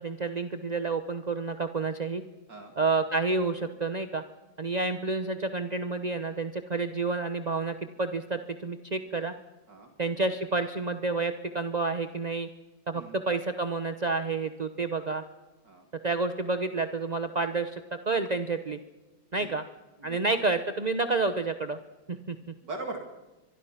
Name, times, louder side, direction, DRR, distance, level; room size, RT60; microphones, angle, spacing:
voice 1, 0.0-2.2 2.8-4.2 4.6-9.3 10.0-12.5 12.9-15.2 16.0-18.8 19.3-19.6 20.0-21.8 22.1-22.5, right 3 dB, 40° right, 9 dB, 0.5 m, -29 dB
voice 2, 22.6-23.0, right 2 dB, 60° right, 3 dB, 2.8 m, -40 dB
24.5 x 23.5 x 5.9 m, 1.1 s
omnidirectional pair, 2.2 m